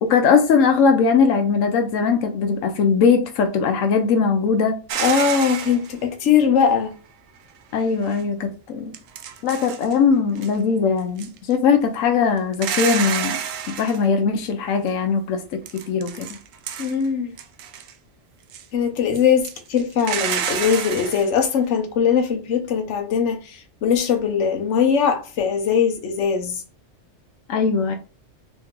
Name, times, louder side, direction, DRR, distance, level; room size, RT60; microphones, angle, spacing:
voice 1, 0.0-4.8 7.7-8.9 9.4-13.4 13.7-15.4 15.9-16.3 27.5-27.9, left 5 dB, 90° left, 1.0 m, -20 dB
sound 1, 4.9-5.9 8.0-8.2 8.9-10.0 10.4-10.6 11.0-11.5 12.5-14.0 15.7-17.1 17.4-17.9 18.5-18.6 19.2-21.3, right 8 dB, 90° right, 1.0 m, -28 dB
voice 2, 5.0-6.9 16.8-17.3 18.7-26.6, left 7 dB, 70° left, 1.1 m, -20 dB
3.1 x 3.0 x 3.6 m
omnidirectional pair, 1.3 m